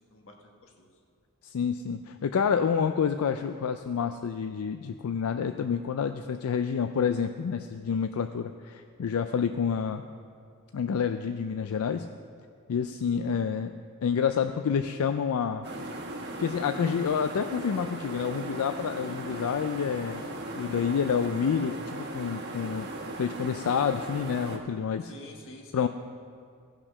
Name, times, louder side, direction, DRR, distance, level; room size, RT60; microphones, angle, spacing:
voice 1, 0.1-0.9 25.0-25.9, left 1 dB, 65° left, 1 dB, 1.4 m, -48 dB
voice 2, 1.4-10.0 10.7-12.1 12.7-13.7 14.0-15.7 16.4-20.2 20.5-22.9 23.2-25.1 25.7-25.9, left 6 dB, 85° left, 8 dB, 0.4 m, -28 dB
sound 1, 15.6-24.6, right 1 dB, 55° right, 1.4 m, -38 dB
16.0 x 5.9 x 5.4 m, 2.3 s
head